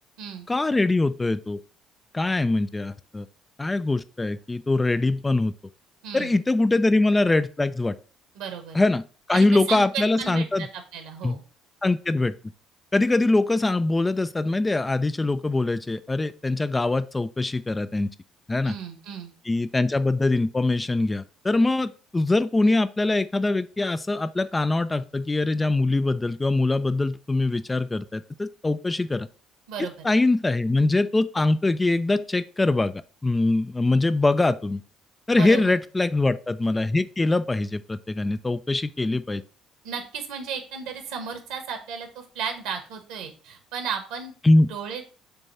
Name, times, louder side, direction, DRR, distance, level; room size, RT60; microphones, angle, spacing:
voice 1, 0.5-1.6 2.1-3.3 3.6-5.5 6.1-8.0 8.7-9.0 9.3-10.7 11.2-11.4 11.8-12.3 12.9-18.1 18.5-18.7 19.5-29.3 29.8-34.8 35.3-39.4 44.4-44.7, left 2 dB, 20° left, 12 dB, 0.4 m, -23 dB
voice 2, 6.0-6.4 8.3-8.8 9.3-11.4 18.6-19.3 29.7-30.1 35.3-35.7 39.8-44.3 44.7-45.0, right 7 dB, 65° right, 7 dB, 1.3 m, -34 dB
6.8 x 3.0 x 5.6 m, 0.38 s
figure-of-eight pair, 50°, 0 cm